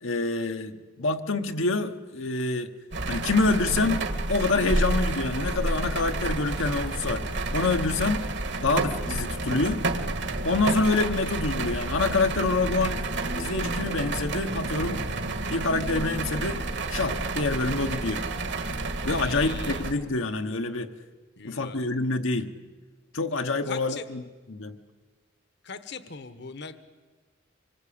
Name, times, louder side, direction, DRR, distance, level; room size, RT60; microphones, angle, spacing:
voice 1, 0.0-2.7 3.1-7.2 7.5-8.2 8.6-9.8 10.4-13.0 13.3-15.0 15.5-16.6 16.9-18.3 19.0-20.9 21.4-22.5 23.1-24.2 24.5-24.8, left 3 dB, 75° left, 6 dB, 1.1 m, -26 dB
sound 1, 2.9-19.9, right 2 dB, 60° right, 1.8 m, -30 dB
voice 2, 19.2-19.9 21.4-21.8 23.7-24.0 25.6-26.8, left 5 dB, 60° left, 12 dB, 1.2 m, -40 dB
25.5 x 21.0 x 8.6 m, 1.3 s
head